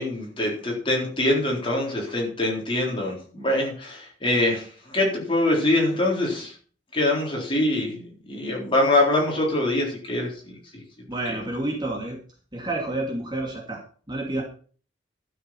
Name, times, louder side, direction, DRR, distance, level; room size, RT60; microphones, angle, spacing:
voice 1, 0.0-6.5 6.9-10.8 11.3-11.4, left 1 dB, 30° left, -2 dB, 4.1 m, -24 dB
voice 2, 11.1-12.2 12.5-13.8 14.1-14.4, right 2 dB, 25° right, 0 dB, 2.4 m, -29 dB
12.5 x 6.6 x 6.1 m, 0.43 s
head